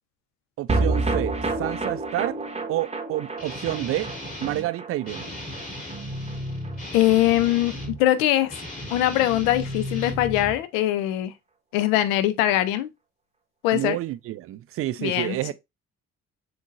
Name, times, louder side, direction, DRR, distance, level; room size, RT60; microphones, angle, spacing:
voice 1, 0.6-2.4 2.7-4.1 4.4-5.3 13.7-15.5, right 15 dB, 35° right, 0.4 m, -29 dB
sound 1, 0.7-7.1 7.4-7.5 7.8-7.9, right 3 dB, 15° right, 1.0 m, -29 dB
Guitar, 3.4-4.7 5.0-8.0 8.4-10.6, left 1 dB, 20° left, 3.5 m, -35 dB
voice 2, 6.9-8.5 8.9-11.3 11.7-12.9 13.6-14.0 15.0-15.5, left 13 dB, 65° left, 0.7 m, -22 dB
7.2 x 2.9 x 2.5 m
figure-of-eight pair, 40°, 43 cm